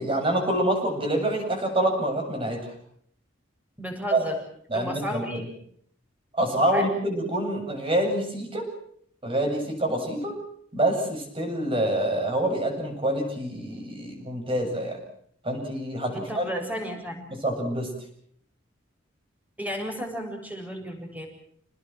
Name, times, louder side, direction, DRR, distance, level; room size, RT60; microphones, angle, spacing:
voice 1, 0.0-2.6 4.1-4.2 4.7-5.4 6.3-8.7 9.2-10.4 10.7-15.0 15.4-16.4 17.3-17.9, right 1 dB, 30° right, 3 dB, 8.0 m, -26 dB
voice 2, 3.8-4.4 4.7-5.4 6.7-6.9 16.1-17.2 19.6-21.3, equal, 10° right, 3 dB, 7.5 m, -33 dB
28.5 x 20.0 x 7.6 m, 0.66 s
head